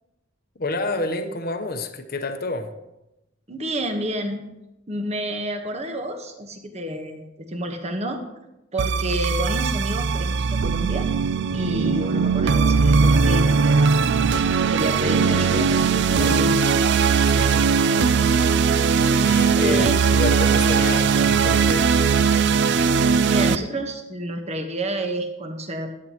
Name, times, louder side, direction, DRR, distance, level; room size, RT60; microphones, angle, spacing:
voice 1, 0.6-2.7 17.2-17.7 19.2-21.9, left 2 dB, 45° left, 7 dB, 0.9 m, -29 dB
voice 2, 3.5-4.5 4.9-8.2 8.7-11.1 11.5-14.0 14.7-16.8 19.5-20.0 23.3-26.0, right 1 dB, 30° right, 5 dB, 1.1 m, -29 dB
sound 1, 8.8-23.6, right 5 dB, 55° right, 0.4 m, -19 dB
sound 2, 15.0-19.6 20.4-21.9, left 1 dB, 80° left, 0.9 m, -37 dB
14.0 x 9.9 x 3.0 m, 0.93 s
head